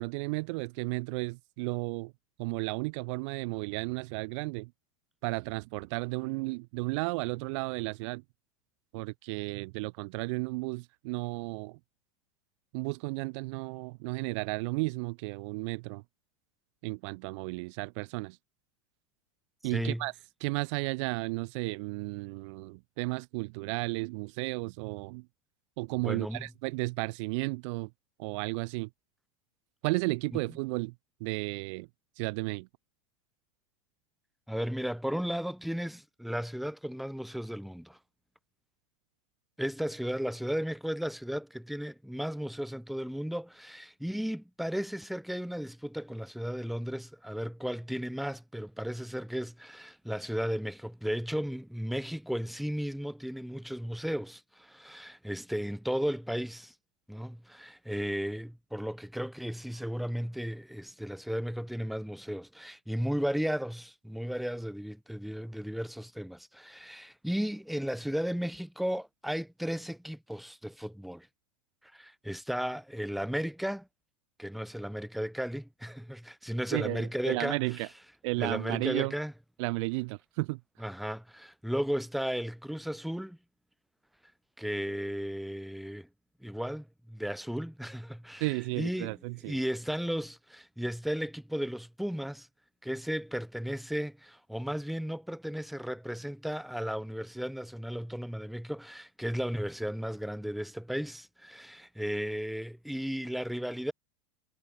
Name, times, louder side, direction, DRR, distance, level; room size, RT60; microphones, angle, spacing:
voice 1, 0.0-2.1 2.4-4.7 5.2-8.2 8.9-11.8 12.7-16.0 16.8-18.4 19.6-20.1 20.4-25.2 25.8-27.9 28.2-28.9 29.8-30.9 31.2-31.9 32.2-32.7 76.7-77.9 78.2-79.1 79.6-80.6 88.4-89.6, right 27 dB, 60° right, 1.0 m, -33 dB
voice 2, 19.7-20.0 26.0-26.5 34.5-38.0 39.6-56.7 57.1-71.3 71.9-73.9 74.4-77.9 78.4-79.3 80.8-83.4 84.6-86.1 86.4-89.2 89.5-92.5 92.8-103.9, equal, ahead, 2.0 m, -35 dB
supercardioid pair, 135°, 18 cm